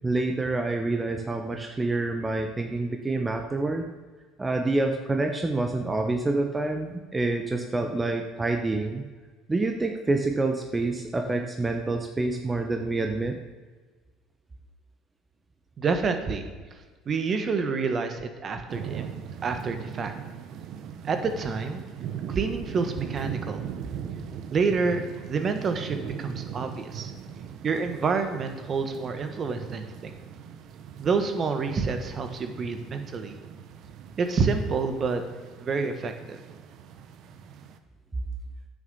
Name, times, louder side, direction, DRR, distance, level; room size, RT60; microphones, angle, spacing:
voice 1, 0.0-3.9 4.4-9.0 9.5-13.4, right 2 dB, 20° right, 4 dB, 1.0 m, -27 dB
voice 2, 15.8-16.5 17.1-19.1 19.4-20.1 21.1-21.8 22.3-23.6 24.5-27.1 27.6-30.1 31.0-33.4 34.2-35.2 35.6-36.4, right 4 dB, 40° right, 7 dB, 1.4 m, -28 dB
sound 1, 18.7-37.8, right 8 dB, 60° right, 0.8 m, -40 dB
9.2 x 6.4 x 7.0 m, 1.4 s
hypercardioid pair, 70°, 0 cm